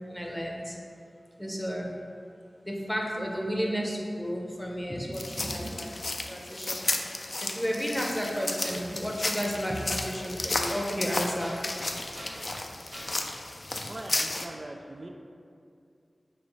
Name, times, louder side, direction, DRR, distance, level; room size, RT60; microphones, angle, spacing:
voice 1, 0.1-0.8 1.4-1.9 2.7-5.9 6.3-6.8 7.4-11.5, equal, 10° left, -1 dB, 0.7 m, -32 dB
sound 1, 3.3-4.7 6.0-6.1 8.2-8.3 9.0-9.1 10.6-13.3, equal, 90° right, 1.4 m, -46 dB
sound 2, 5.1-14.5, left 2 dB, 55° left, 0.3 m, -33 dB
voice 2, 8.7-9.0 13.7-15.1, right 1 dB, 55° right, 1 dB, 0.3 m, -42 dB
5.1 x 2.9 x 3.1 m, 2.4 s
wide cardioid pair, 50°, 0 cm